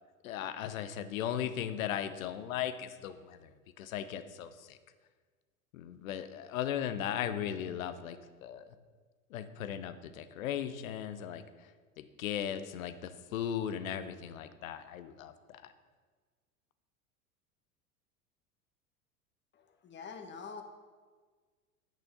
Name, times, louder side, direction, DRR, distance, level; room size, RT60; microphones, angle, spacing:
voice 1, 0.2-4.8 5.7-8.7 9.3-11.7 12.0-15.7, left 9 dB, 65° left, 11 dB, 0.8 m, -37 dB
voice 2, 19.5-20.6, left 5 dB, 25° left, 5 dB, 1.2 m, -46 dB
9.1 x 6.2 x 5.4 m, 1.5 s
figure-of-eight pair, 85°, 44 cm